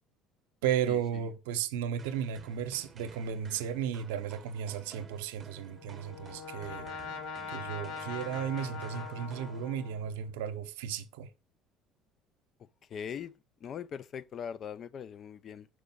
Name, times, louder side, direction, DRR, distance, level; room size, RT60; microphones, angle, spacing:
voice 1, 0.6-6.9 7.5-11.3, right 9 dB, 90° right, 0.7 m, -34 dB
sound 1, 2.0-10.1, right 5 dB, 30° right, 0.7 m, -53 dB
Brass instrument, 5.5-10.3, left 5 dB, 75° left, 1.2 m, -42 dB
voice 2, 12.9-15.7, left 7 dB, 50° left, 0.4 m, -41 dB
5.1 x 4.8 x 5.3 m
supercardioid pair, 85°, 0 cm